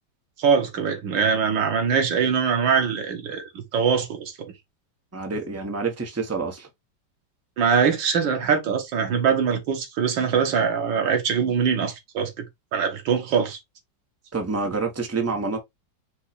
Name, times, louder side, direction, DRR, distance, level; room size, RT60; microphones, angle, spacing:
voice 1, 0.4-4.5 7.6-12.5 12.7-13.6, right 6 dB, 85° right, 1.9 m, -23 dB
voice 2, 5.1-6.7 14.3-15.6, right 4 dB, 10° right, 0.7 m, -27 dB
5.4 x 2.4 x 4.1 m
omnidirectional pair, 2.0 m